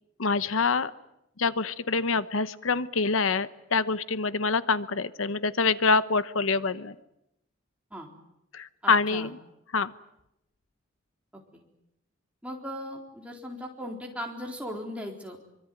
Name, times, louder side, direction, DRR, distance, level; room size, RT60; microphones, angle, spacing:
voice 1, 0.2-0.9 1.4-6.9 8.5-9.4 9.7-9.9, left 4 dB, 85° left, 14 dB, 0.9 m, -26 dB
voice 2, 8.8-9.3 11.5-11.6 12.4-15.4, equal, 5° right, 0 dB, 4.1 m, -38 dB
25.0 x 24.0 x 9.3 m, 0.85 s
head